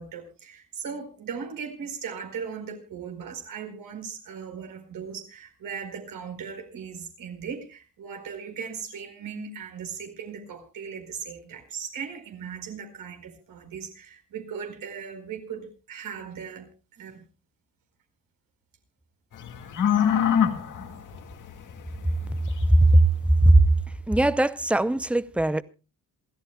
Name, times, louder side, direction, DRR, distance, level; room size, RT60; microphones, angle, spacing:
voice 1, 0.0-17.2, right 6 dB, 80° right, 4.6 m, -38 dB
sound 1, 19.3-23.3, left 8 dB, 65° left, 2.1 m, -26 dB
voice 2, 22.7-23.0 23.4-23.6 24.1-25.6, right 1 dB, 5° right, 0.6 m, -18 dB
27.5 x 13.0 x 2.3 m
cardioid pair, 135°, 33 cm